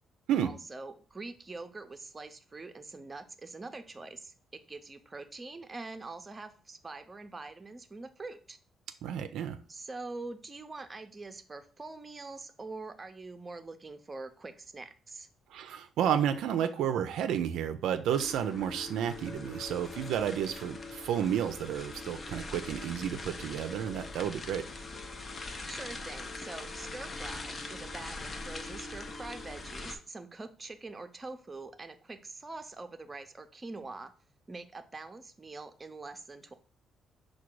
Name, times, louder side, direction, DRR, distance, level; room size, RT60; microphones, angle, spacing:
voice 1, 0.4-8.6 9.7-15.3 25.7-34.1 34.5-36.5, right 3 dB, 25° right, 7 dB, 0.5 m, -44 dB
voice 2, 9.0-9.6 15.5-24.6, right 9 dB, 85° right, 9 dB, 0.3 m, -31 dB
sound 1, 18.1-30.0, left 3 dB, 35° left, 0.6 m, -42 dB
4.7 x 2.2 x 4.5 m, 0.38 s
cardioid pair, 90°, 0 cm